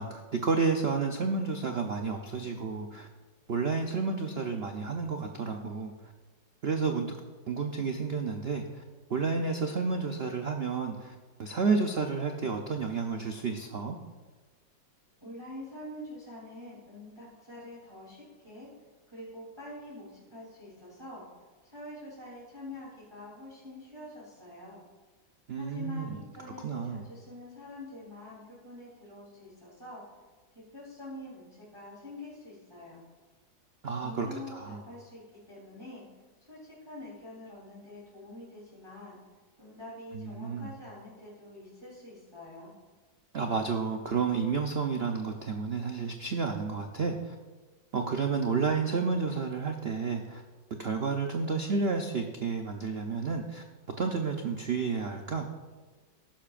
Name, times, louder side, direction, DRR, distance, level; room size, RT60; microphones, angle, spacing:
voice 1, 0.0-3.1 3.5-5.9 6.6-7.2 7.5-8.8 9.1-14.0 25.5-26.2 26.6-27.0 33.8-34.8 40.1-40.7 43.3-47.3 47.9-50.4 50.8-53.6 54.0-55.5, right 4 dB, 85° right, 4 dB, 0.5 m, -31 dB
voice 2, 15.2-18.7 19.1-21.2 21.6-24.8 25.5-30.0 30.7-33.0 34.0-36.0 36.5-39.2 39.6-42.7, left 1 dB, 10° right, -8 dB, 3.3 m, -46 dB
14.5 x 12.0 x 2.5 m, 1.3 s
omnidirectional pair, 2.1 m